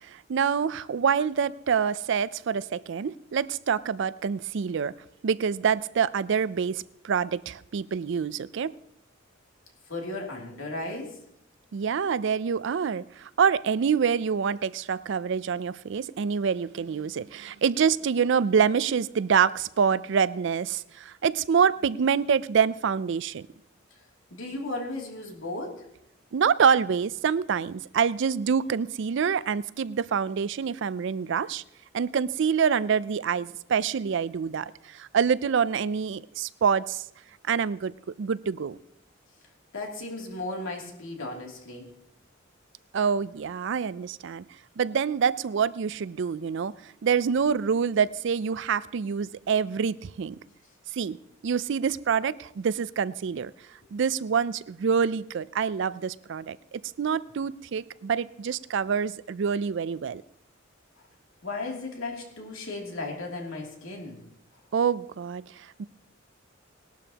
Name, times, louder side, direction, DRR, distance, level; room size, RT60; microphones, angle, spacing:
voice 1, 0.1-4.9 5.2-8.7 11.7-23.5 26.3-31.6 31.9-37.0 37.5-37.9 38.2-38.8 42.9-44.4 44.8-46.7 47.0-50.4 50.9-51.2 51.4-53.5 53.9-60.2 64.7-65.4 65.8-65.9, right 6 dB, 65° right, 18 dB, 0.4 m, -26 dB
voice 2, 9.9-11.2 24.3-25.8 39.7-41.9 61.4-64.2, left 2 dB, 85° left, 0 dB, 2.7 m, -35 dB
19.0 x 12.0 x 2.9 m, 0.77 s
head